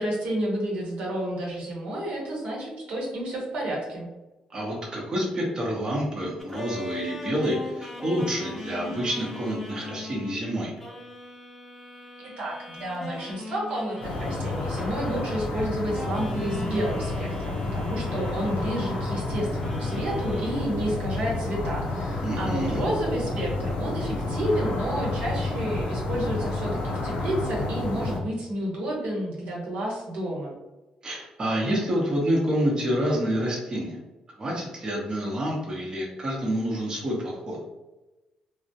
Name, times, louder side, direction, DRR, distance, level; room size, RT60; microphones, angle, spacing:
voice 1, 0.0-4.1 12.2-30.5, right 1 dB, 75° right, -4 dB, 0.9 m, -30 dB
voice 2, 4.5-10.7 22.2-22.8 31.0-34.0 34.4-37.6, equal, 35° right, -3 dB, 0.7 m, -28 dB
sound 1, 6.4-10.4 10.8-15.6 15.9-19.3 19.6-20.5, left 2 dB, 10° left, 0.7 m, -40 dB
sound 2, 14.0-28.2, left 2 dB, 70° left, 0.7 m, -30 dB
2.3 x 2.0 x 2.7 m, 1.1 s
cardioid pair, 85°, 2 cm